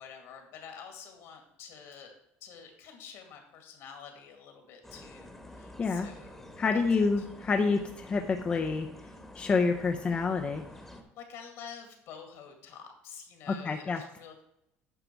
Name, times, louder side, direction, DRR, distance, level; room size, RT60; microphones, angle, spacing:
voice 1, 0.0-2.1 2.4-7.3 10.9-14.4, left 7 dB, 65° left, 5 dB, 2.2 m, -48 dB
sound 1, 4.8-11.0, left 1 dB, 5° left, 1.2 m, -49 dB
voice 2, 6.6-8.9 9.3-10.6 13.5-14.0, left 4 dB, 25° left, 4 dB, 0.6 m, -28 dB
9.1 x 5.9 x 4.6 m, 0.80 s
cardioid pair, 130°, 5 cm